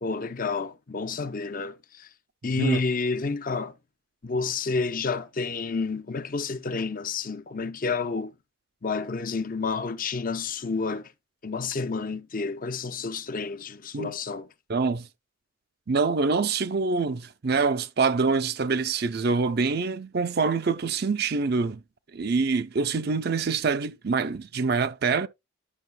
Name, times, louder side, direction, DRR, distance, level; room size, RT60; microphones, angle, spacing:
voice 1, 0.0-2.1 2.4-3.7 4.2-8.3 8.8-11.1 11.4-14.5, left 4 dB, 40° left, 0.6 m, -30 dB
voice 2, 14.7-15.1 15.9-21.8 22.1-25.3, right 4 dB, 50° right, 0.5 m, -25 dB
11.0 x 6.4 x 2.2 m
head